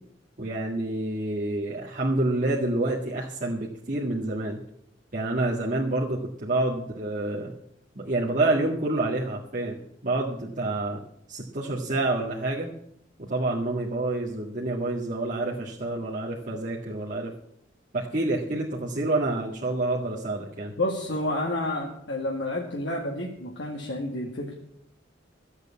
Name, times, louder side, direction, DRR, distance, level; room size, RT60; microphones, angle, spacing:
voice 1, 0.4-4.6 5.1-7.5 8.0-9.8 10.0-11.0 11.3-12.7 13.2-17.3 17.9-20.8, right 2 dB, 45° right, -5 dB, 1.9 m, -28 dB
voice 2, 20.8-24.5, left 1 dB, 70° left, -1 dB, 2.0 m, -30 dB
13.5 x 8.1 x 8.4 m, 0.73 s
head